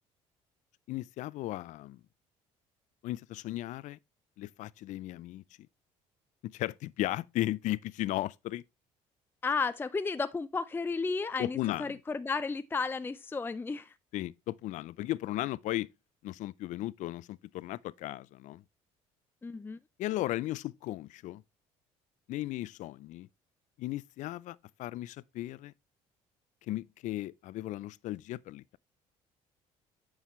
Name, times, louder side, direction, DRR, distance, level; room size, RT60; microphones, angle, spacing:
voice 1, 0.9-2.0 3.0-4.0 4.4-5.4 6.4-8.6 11.4-12.0 14.1-15.9 16.2-18.6 20.0-21.4 22.3-23.3 23.8-25.7 26.7-28.8, left 16 dB, 70° left, 0.4 m, -36 dB
voice 2, 9.4-13.9 19.4-19.8, left 4 dB, 15° left, 0.5 m, -33 dB
9.4 x 6.3 x 3.1 m
cardioid pair, 90°, 13 cm